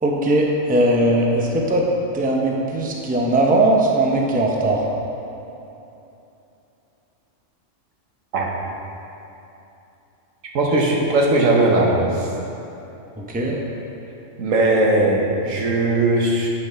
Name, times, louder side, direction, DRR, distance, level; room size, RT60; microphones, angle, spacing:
voice 1, 0.0-1.9 2.1-4.8 13.2-13.6, right 1 dB, 10° right, -1 dB, 0.6 m, -19 dB
voice 2, 10.5-12.3 14.4-16.5, right 2 dB, 85° right, -1 dB, 1.4 m, -18 dB
9.7 x 5.8 x 4.2 m, 2.9 s
omnidirectional pair, 1.3 m